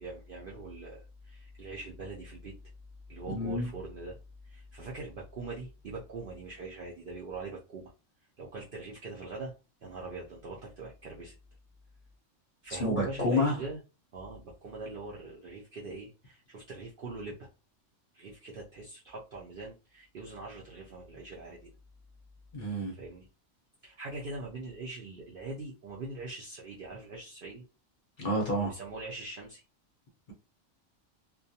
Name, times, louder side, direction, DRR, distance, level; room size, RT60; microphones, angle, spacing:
voice 1, 0.0-2.5 3.1-4.2 4.4-7.9 8.4-9.5 9.8-11.3 12.6-13.8 14.1-17.5 18.1-21.7 22.9-23.3 23.8-27.6 28.6-29.6, right 3 dB, 65° right, 0.5 m, -42 dB
voice 2, 3.3-3.7 12.8-13.6 22.5-22.9 28.2-28.7, left 1 dB, 50° left, 0.7 m, -29 dB
2.3 x 2.2 x 2.7 m
omnidirectional pair, 1.4 m